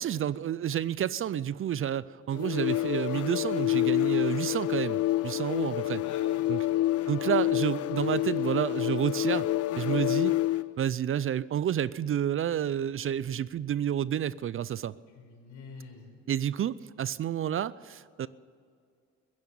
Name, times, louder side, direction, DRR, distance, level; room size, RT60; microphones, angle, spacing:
voice 1, 0.0-6.0 6.5-6.6 7.1-9.5 9.8-10.3 10.8-14.9 16.3-18.3, right 10 dB, 45° right, 19 dB, 0.4 m, -30 dB
sound 1, 2.3-10.7, left 15 dB, 55° left, 0.5 m, -28 dB
voice 2, 6.0-6.6 7.8-8.4 15.1-16.2, left 4 dB, 75° left, 1 dB, 5.5 m, -47 dB
16.0 x 10.5 x 8.6 m, 2.3 s
cardioid pair, 90°, 30 cm